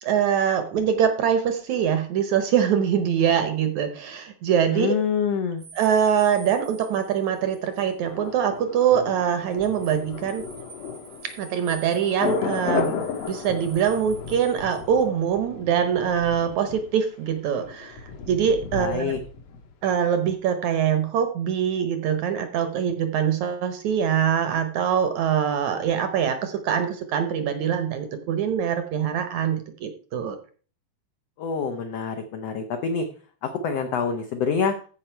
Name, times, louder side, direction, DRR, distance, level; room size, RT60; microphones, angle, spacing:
voice 1, 0.0-4.9 5.8-10.4 11.4-18.0 18.3-19.2 19.8-30.4, right 8 dB, 70° right, 8 dB, 1.9 m, -23 dB
voice 2, 4.7-5.6 18.7-19.2 31.4-33.1 33.4-34.7, left 6 dB, 80° left, 6 dB, 1.4 m, -26 dB
sound 1, 5.6-7.9 8.2-8.3 9.3-15.0, right 4 dB, 90° right, 6.6 m, -47 dB
Thunder, 8.1-20.0 20.3-20.4, left 6 dB, 65° left, 1.7 m, -34 dB
14.5 x 5.2 x 4.4 m, 0.40 s
omnidirectional pair, 4.1 m